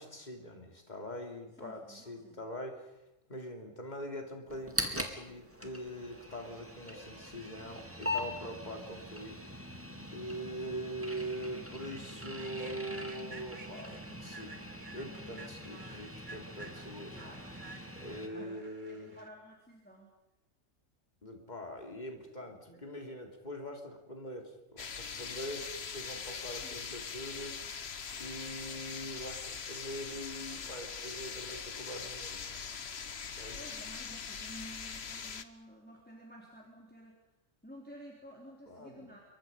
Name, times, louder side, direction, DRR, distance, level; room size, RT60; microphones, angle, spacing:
voice 1, 0.0-9.4 10.1-13.9 14.2-14.6 14.9-17.2 18.0-19.2 21.2-27.6 28.2-32.4 33.3-33.6 38.7-39.1, equal, 35° left, 2 dB, 3.4 m, -43 dB
voice 2, 1.6-2.4 17.1-17.7 18.1-18.6 18.9-20.1 21.9-22.0 22.2-22.8 26.5-26.8 33.6-37.2 37.6-39.2, equal, 5° left, -2 dB, 4.0 m, -52 dB
sound 1, 4.5-18.3, left 1 dB, 10° right, 2.4 m, -42 dB
Human voice / Train, 10.4-10.6 11.0-11.2 11.7-19.3, right 3 dB, 40° right, 1.8 m, -53 dB
sound 2, 24.8-35.4, left 6 dB, 55° left, 1.4 m, -42 dB
27.0 x 23.5 x 5.6 m, 0.93 s
omnidirectional pair, 1.4 m